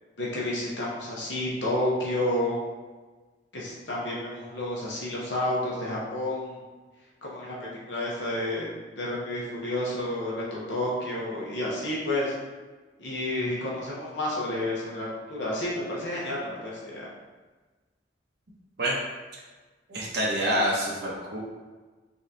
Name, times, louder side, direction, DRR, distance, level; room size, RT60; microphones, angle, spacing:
voice 1, 0.2-2.6 3.5-6.6 7.2-8.7 9.0-12.3 13.0-17.1, left 1 dB, 80° left, -5 dB, 0.9 m, -30 dB
voice 2, 19.9-21.4, equal, 65° right, -5 dB, 0.8 m, -27 dB
4.0 x 3.5 x 2.7 m, 1.3 s
head